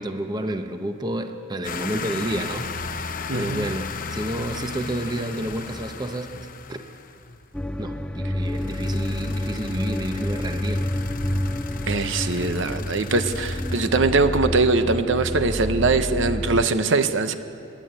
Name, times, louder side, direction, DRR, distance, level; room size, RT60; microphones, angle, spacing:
voice 1, 0.0-6.8 7.8-10.8, right 1 dB, 20° right, 6 dB, 0.9 m, -30 dB
sound 1, 1.6-7.5 8.4-13.9, left 4 dB, 40° left, 0.8 m, -35 dB
voice 2, 3.3-3.7 11.9-17.4, right 3 dB, 60° right, 9 dB, 0.9 m, -22 dB
sound 2, 7.5-16.7, left 1 dB, 5° left, 0.4 m, -29 dB
29.0 x 11.0 x 8.9 m, 2.6 s
head